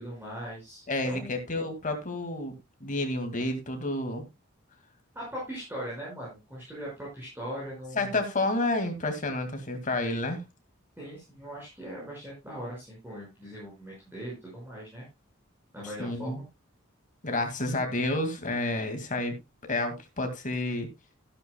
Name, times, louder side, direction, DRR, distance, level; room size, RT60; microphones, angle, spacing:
voice 1, 0.0-1.3 5.2-8.2 11.0-15.1 15.7-16.5, equal, 10° right, 5.5 m, -40 dB
voice 2, 0.9-2.5 2.8-4.3 7.9-10.4 15.8-16.4 17.2-19.4 19.7-20.9, left 2 dB, 40° left, 2.2 m, -30 dB
13.0 x 11.5 x 2.3 m
head